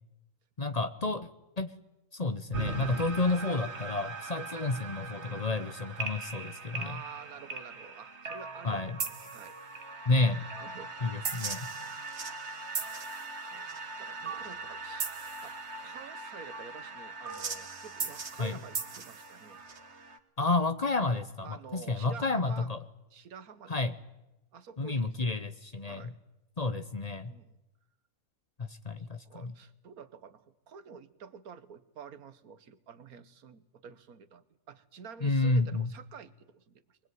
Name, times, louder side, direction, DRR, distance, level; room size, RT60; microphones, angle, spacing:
voice 1, 0.6-1.3 1.6-1.7 2.1-7.0 8.6-9.0 10.1-10.4 11.0-11.7 18.4-18.6 20.4-22.8 23.7-23.9 24.8-26.1 26.6-27.3 28.7-29.5 35.2-35.9, left 3 dB, 30° left, 11 dB, 0.9 m, -30 dB
sound 1, 2.5-20.2, right 4 dB, 50° right, 1.7 m, -39 dB
voice 2, 6.7-9.6 10.2-11.0 11.8-12.0 13.1-13.7 14.0-15.1 15.4-19.6 21.4-22.7 23.1-23.8 24.5-25.4 25.8-26.2 27.3-27.6 29.0-37.0, right 6 dB, 80° right, 14 dB, 1.6 m, -49 dB
23.5 x 19.5 x 9.4 m, 0.93 s
omnidirectional pair, 1.5 m